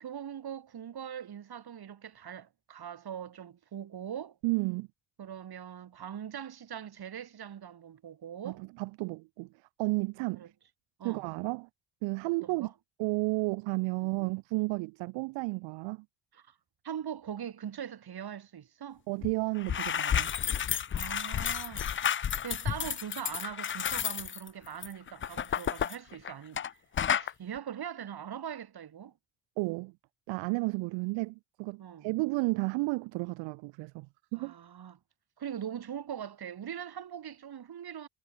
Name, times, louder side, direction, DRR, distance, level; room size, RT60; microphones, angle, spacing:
voice 1, 0.0-4.4 5.2-8.6 10.4-10.5 11.0-11.3 12.2-12.7 14.0-14.1 16.3-16.5 16.8-19.0 20.9-21.9 22.4-26.8 27.1-29.1 31.8-32.1 34.3-35.0 35.4-38.1, right 9 dB, 50° right, 6.0 m, -41 dB
voice 2, 4.4-4.9 8.4-9.5 9.8-10.5 11.0-11.7 12.0-12.7 13.0-16.0 19.1-20.3 29.6-29.9 30.3-34.1 34.3-34.5, right 25 dB, 70° right, 1.2 m, -32 dB
sound 1, 19.2-19.3 19.6-26.7 27.0-27.3, left 8 dB, 25° left, 0.6 m, -31 dB
figure-of-eight pair, 45°, 47 cm